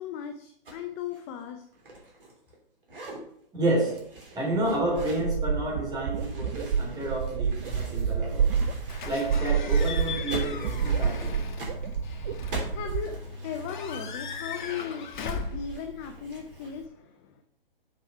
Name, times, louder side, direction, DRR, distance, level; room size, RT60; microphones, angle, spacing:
voice 1, 0.0-1.6 12.7-13.2 13.4-17.4, left 7 dB, 20° left, 6 dB, 0.5 m, -37 dB
sound 1, 0.7-0.8 1.1-2.6 2.8-3.2 3.7-5.3 6.1-9.4 9.6-16.7, right 1 dB, 65° right, 3.6 m, -43 dB
voice 2, 3.5-4.0 4.3-8.6 9.0-11.4, right 1 dB, 15° right, -2 dB, 3.3 m, -30 dB
sound 2, 4.2-4.3 4.5-13.0, right 6 dB, 40° right, 0.5 m, -29 dB
Slam / Squeak / Alarm, 8.9-16.9, left 4 dB, 55° left, 1.2 m, -38 dB
7.3 x 6.3 x 5.5 m, 0.69 s
figure-of-eight pair, 130°, 29 cm